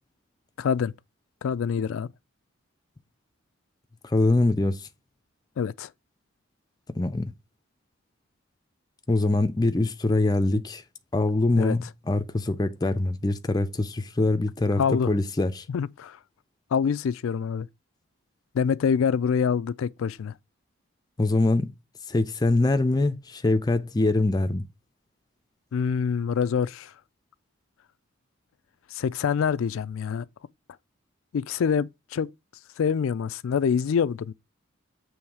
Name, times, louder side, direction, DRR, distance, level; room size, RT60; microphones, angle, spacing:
voice 1, 0.6-0.9 1.4-2.1 5.6-5.9 11.6-11.9 14.8-15.1 15.7-16.2 16.7-17.7 18.5-20.3 25.7-26.9 28.9-30.3 31.3-32.3 32.8-34.3, left 6 dB, 75° left, 0.3 m, -25 dB
voice 2, 4.0-4.8 7.0-7.3 9.1-10.8 11.1-15.6 21.2-21.7 22.1-24.6, left 2 dB, 20° left, 0.5 m, -23 dB
7.0 x 3.2 x 4.6 m
head